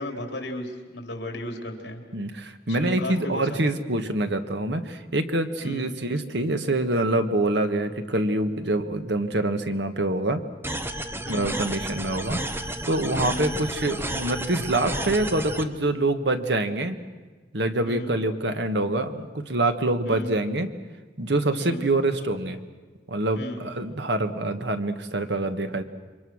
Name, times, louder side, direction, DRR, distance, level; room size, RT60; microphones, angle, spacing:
voice 1, 0.0-2.0 2.7-3.5 5.6-5.9 11.3-11.6 13.3-13.5 17.9-18.2 20.1-20.3 21.6-21.9 23.4-23.7, left 1 dB, 65° left, 4 dB, 3.8 m, -35 dB
voice 2, 2.1-10.4 11.3-17.0 17.5-20.7 21.2-22.6 23.1-25.8, right 2 dB, 70° right, 8 dB, 1.6 m, -25 dB
sound 1, 10.6-15.6, right 1 dB, 15° right, 1.1 m, -32 dB
28.0 x 24.0 x 6.4 m, 1.4 s
head